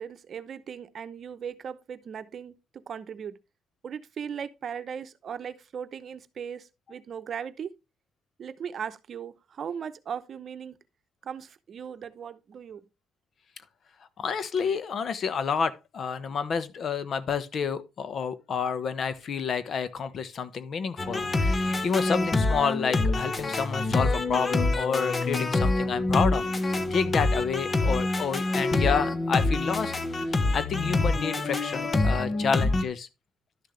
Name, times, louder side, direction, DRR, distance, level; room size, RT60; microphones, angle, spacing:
voice 1, 0.0-3.4 3.8-7.7 8.4-10.8 11.2-12.8, right 7 dB, 55° right, 0.8 m, -38 dB
voice 2, 14.2-26.4 26.9-29.9 30.2-33.1, left 6 dB, 55° left, 1.1 m, -29 dB
sound 1, 21.0-32.8, left 2 dB, 35° left, 1.1 m, -26 dB
11.5 x 6.5 x 3.3 m
cardioid pair, 90°, 0 cm